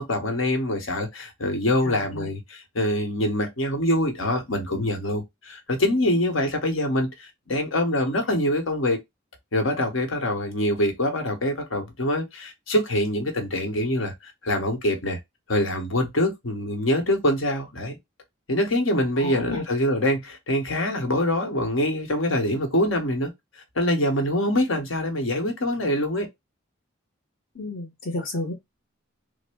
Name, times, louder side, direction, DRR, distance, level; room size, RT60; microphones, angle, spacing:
voice 1, 0.0-9.0 9.5-14.1 14.4-15.2 15.5-18.0 18.5-23.3 23.7-26.3, left 1 dB, 80° left, 1.2 m, -24 dB
voice 2, 1.8-2.3 19.2-19.6 27.5-28.5, left 2 dB, 60° left, 1.1 m, -32 dB
3.5 x 2.1 x 3.5 m
head